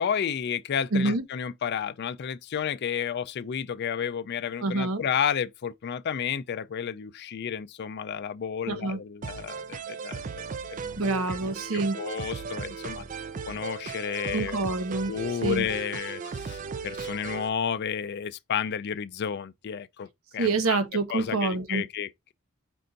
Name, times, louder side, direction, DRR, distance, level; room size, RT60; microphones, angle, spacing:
voice 1, 0.0-10.3 10.7-11.0 11.3-11.4 11.7-13.0 13.5-14.6 15.1-20.8 21.1-22.3, left 7 dB, 50° left, 0.4 m, -31 dB
voice 2, 0.9-1.2 4.6-5.0 8.7-9.0 11.0-12.0 14.3-15.1 15.4-15.6 20.4-21.9, right 3 dB, 80° right, 0.9 m, -27 dB
sound 1, 9.2-17.5, right 5 dB, 40° right, 0.4 m, -37 dB
5.4 x 2.5 x 3.9 m
head